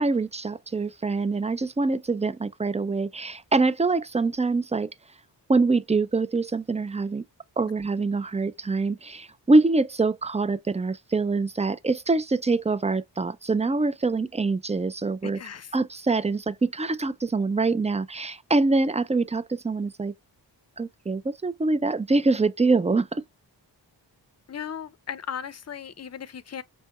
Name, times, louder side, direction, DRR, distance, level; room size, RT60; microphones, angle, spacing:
voice 1, 0.0-4.9 5.5-7.2 7.6-15.4 15.7-20.1 20.8-23.2, right 3 dB, 15° right, 0.3 m, -24 dB
voice 2, 15.2-15.7 24.5-26.6, left 8 dB, 35° left, 0.5 m, -36 dB
5.6 x 2.1 x 4.1 m
wide cardioid pair, 60°, 44 cm